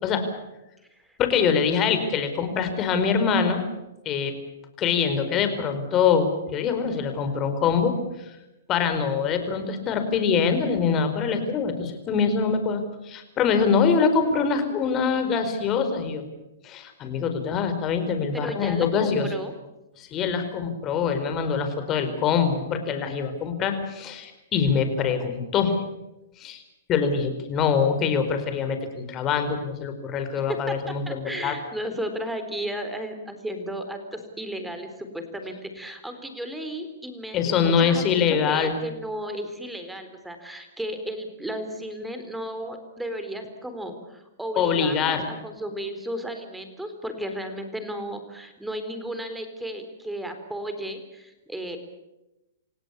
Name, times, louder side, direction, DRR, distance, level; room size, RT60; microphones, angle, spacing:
voice 1, 1.2-3.6 4.0-4.3 4.8-8.3 8.7-16.2 16.6-19.3 20.0-25.8 26.4-26.6 26.9-31.5 37.3-38.8 44.6-45.3, left 6 dB, 30° left, 8 dB, 4.7 m, -24 dB
voice 2, 18.3-19.5 30.4-51.8, equal, 5° right, 7 dB, 4.0 m, -34 dB
28.0 x 17.0 x 8.5 m, 0.96 s
hypercardioid pair, 135°, 0 cm